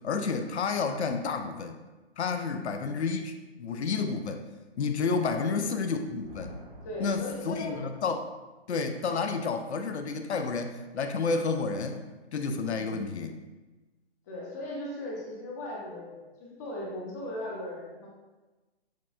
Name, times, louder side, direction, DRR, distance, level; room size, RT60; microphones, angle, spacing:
voice 1, 0.0-1.8 2.2-4.4 4.8-6.5 7.0-8.2 8.7-12.0 12.3-13.4, left 4 dB, 85° left, 6 dB, 0.5 m, -30 dB
voice 2, 2.4-2.9 5.3-5.6 6.8-7.8 12.7-13.1 14.3-18.1, left 1 dB, 15° left, -4 dB, 0.5 m, -38 dB
Thunder, 5.9-8.2, equal, 60° right, 1.5 m, -49 dB
6.1 x 2.4 x 2.3 m, 1.2 s
figure-of-eight pair, 140°, 32 cm